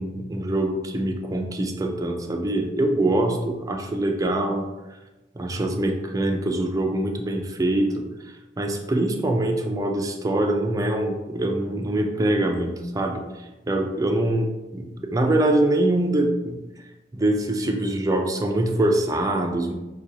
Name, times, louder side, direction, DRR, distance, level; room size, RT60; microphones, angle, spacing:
voice 1, 0.0-4.6 5.4-8.1 8.6-13.2 13.7-16.6 17.1-19.7, right 1 dB, 20° right, 2 dB, 0.4 m, -24 dB
6.0 x 2.2 x 2.7 m, 1.1 s
head